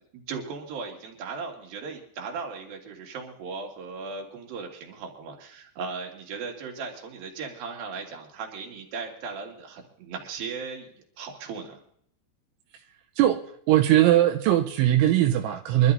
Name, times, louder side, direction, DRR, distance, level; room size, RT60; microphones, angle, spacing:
voice 1, 0.1-10.9 11.2-11.8, right 5 dB, 60° right, 1 dB, 3.7 m, -37 dB
voice 2, 13.2-15.9, right 13 dB, 85° right, 4 dB, 3.2 m, -20 dB
25.0 x 12.5 x 2.7 m, 0.65 s
omnidirectional pair, 5.3 m